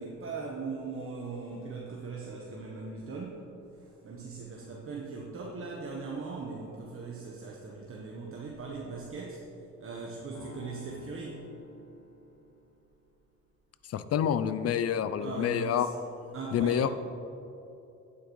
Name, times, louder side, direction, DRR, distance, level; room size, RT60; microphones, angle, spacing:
voice 1, 0.0-9.5 9.8-11.5 15.2-15.9 16.3-16.9, right 4 dB, 45° right, -2 dB, 1.1 m, -39 dB
sound 1, 10.3-12.7, left 2 dB, 75° left, 1.8 m, -50 dB
voice 2, 13.9-15.9 16.5-16.9, left 9 dB, 55° left, 13 dB, 0.5 m, -27 dB
9.2 x 8.4 x 3.2 m, 2.9 s
cardioid pair, 90°, 30 cm